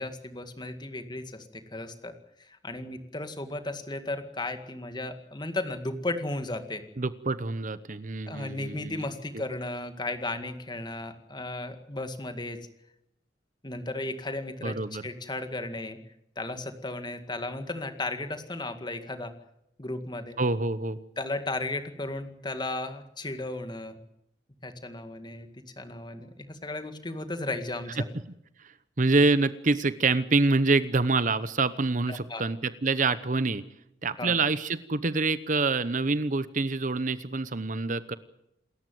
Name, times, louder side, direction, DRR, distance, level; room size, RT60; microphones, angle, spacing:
voice 1, 0.0-6.8 8.3-12.6 13.6-14.7 15.0-16.0 16.4-19.3 19.8-20.4 21.2-24.0 24.6-25.5 25.8-28.1 32.1-32.4 34.2-34.4, left 2 dB, 25° left, 8 dB, 2.0 m, -35 dB
voice 2, 7.0-9.1 14.6-15.0 20.4-21.0 28.6-33.6 34.0-38.2, right 3 dB, 40° right, 15 dB, 0.9 m, -26 dB
28.0 x 14.0 x 9.3 m, 0.81 s
head